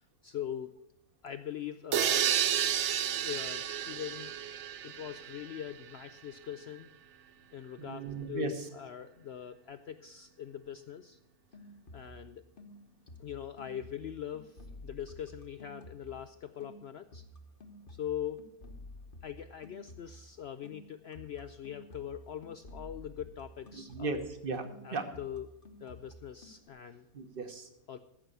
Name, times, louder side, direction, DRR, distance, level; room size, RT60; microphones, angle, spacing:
voice 1, 0.2-0.7 1.2-2.3 3.2-4.3 4.8-6.9 7.5-11.2 11.9-12.5 13.2-17.2 17.9-18.4 19.2-24.1 24.8-25.5 25.8-27.1 27.9-28.0, left 10 dB, 70° left, 10 dB, 0.6 m, -42 dB
sound 1, 1.9-5.7, right 9 dB, 60° right, 0.9 m, -31 dB
voice 2, 7.8-8.7 23.7-24.6 24.9-25.1 27.1-27.7, right 3 dB, 40° right, 7 dB, 1.3 m, -36 dB
sound 2, 11.5-12.3 12.6-16.3 16.6-24.4 24.6-26.7, left 1 dB, 40° left, 1.2 m, -52 dB
14.5 x 6.2 x 6.7 m, 0.83 s
omnidirectional pair, 1.6 m